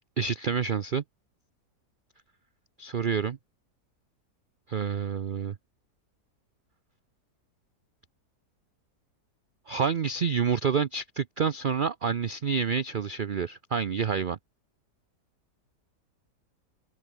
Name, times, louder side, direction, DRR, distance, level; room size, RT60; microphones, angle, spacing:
voice 1, 0.2-1.0 2.8-3.4 4.7-5.5 9.7-14.4, right 6 dB, 65° right, 0.5 m, -28 dB
open air
omnidirectional pair, 1.8 m